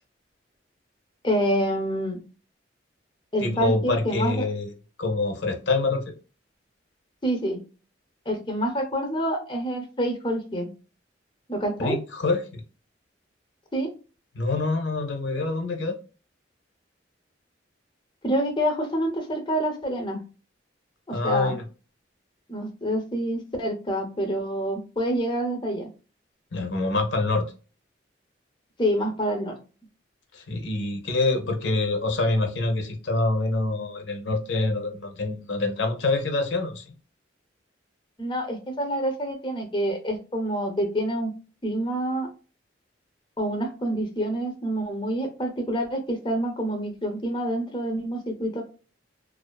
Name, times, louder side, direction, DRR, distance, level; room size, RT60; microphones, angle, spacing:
voice 1, 1.2-2.2 3.3-4.4 7.2-7.6 8.3-10.7 11.5-12.0 13.7-13.9 18.2-20.2 21.1-21.6 22.5-25.9 28.8-29.5 38.2-41.3 41.6-42.3 43.4-48.6, equal, 25° left, 0.5 m, -27 dB
voice 2, 3.4-4.7 5.0-6.1 11.8-12.6 14.4-16.0 21.1-21.6 26.5-27.5 30.3-36.9, left 2 dB, 80° left, 0.6 m, -26 dB
2.4 x 2.4 x 2.2 m
head